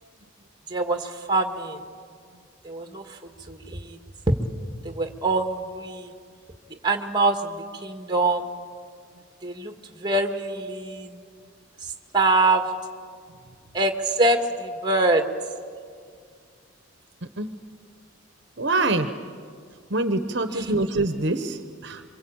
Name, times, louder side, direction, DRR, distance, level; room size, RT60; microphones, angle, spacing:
voice 1, 0.7-1.8 2.6-3.2 3.5-4.0 4.8-6.1 6.8-8.4 9.4-9.7 10.0-11.2 12.1-12.6 13.7-15.2, right 2 dB, 20° right, 5 dB, 1.7 m, -24 dB
voice 2, 17.2-17.6 18.6-19.1 19.9-22.0, right 2 dB, 55° right, 8 dB, 1.1 m, -25 dB
27.5 x 24.5 x 8.8 m, 2.1 s
head